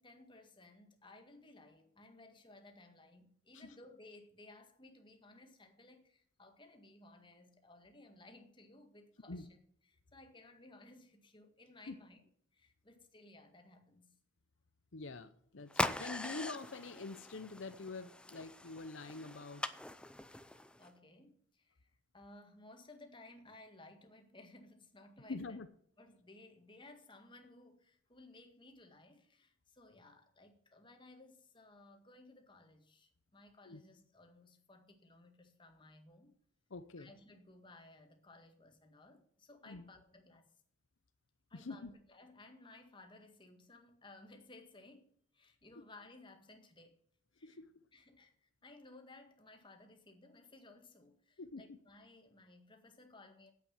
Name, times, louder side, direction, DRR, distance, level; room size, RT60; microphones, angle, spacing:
voice 1, 0.0-9.6 9.9-12.2 12.5-14.1 20.8-25.6 26.0-36.3 37.0-40.5 41.5-47.0 47.3-47.6 47.9-53.5, left 2 dB, 25° left, 1.8 m, -59 dB
voice 2, 14.9-19.6 25.3-25.7 33.7-33.8 36.7-37.1 39.7-39.9 41.5-41.9 47.4-47.7 51.4-51.8, left 3 dB, 85° left, 0.8 m, -46 dB
sound 1, 15.7-20.9, left 1 dB, 5° left, 0.5 m, -41 dB
9.2 x 8.3 x 7.3 m
head